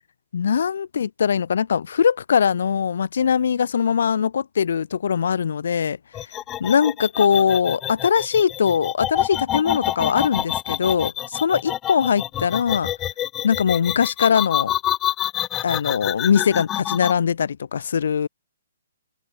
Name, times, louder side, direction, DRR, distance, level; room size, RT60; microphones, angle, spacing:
voice 1, 0.3-6.0 6.6-12.9 13.4-14.7 15.6-18.3, left 7 dB, 60° left, 5.0 m, -21 dB
sound 1, 6.1-17.1, left 12 dB, 20° left, 3.9 m, -27 dB
figure-of-eight pair, 130°, 0 cm